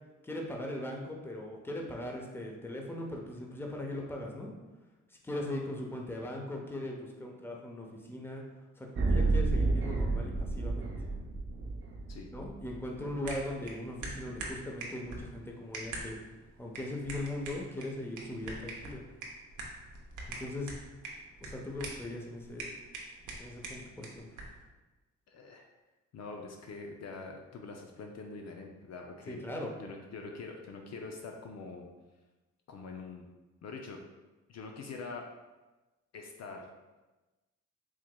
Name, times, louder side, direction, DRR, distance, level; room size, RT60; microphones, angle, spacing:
voice 1, 0.2-4.5 5.2-8.4 8.8-10.9 12.3-16.2 16.6-19.0 20.4-20.8 21.4-22.8 23.4-24.3 29.3-29.7, left 1 dB, 5° left, 0 dB, 0.7 m, -39 dB
sound 1, 9.0-13.0, right 3 dB, 45° right, 0.6 m, -30 dB
sound 2, 13.2-24.6, right 2 dB, 75° right, 0.8 m, -44 dB
voice 2, 25.3-25.7 26.1-29.4 29.8-31.9 32.7-33.3 33.6-34.0 34.5-35.3 36.1-36.7, left 4 dB, 60° left, 2 dB, 0.5 m, -44 dB
4.7 x 2.9 x 2.2 m, 1.1 s
supercardioid pair, 65°, 31 cm